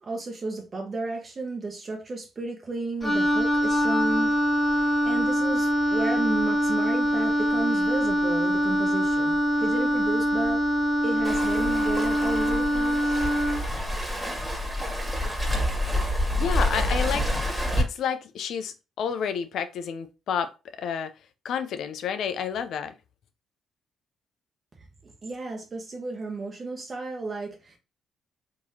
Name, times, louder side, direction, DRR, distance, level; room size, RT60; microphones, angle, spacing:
voice 1, 0.0-4.3 4.8-10.6 11.0-13.2 25.0-27.8, right 3 dB, 40° right, 0.9 m, -33 dB
Wind instrument woodwind instrument, 3.0-13.7, equal, 15° left, 1.6 m, -24 dB
Waves surf, 11.2-17.8, left 1 dB, 5° right, 1.6 m, -28 dB
voice 2, 16.4-17.3 17.8-20.5 20.8-21.1 21.4-22.9, left 7 dB, 70° left, 0.5 m, -30 dB
3.7 x 3.0 x 2.7 m
supercardioid pair, 70°, 0 cm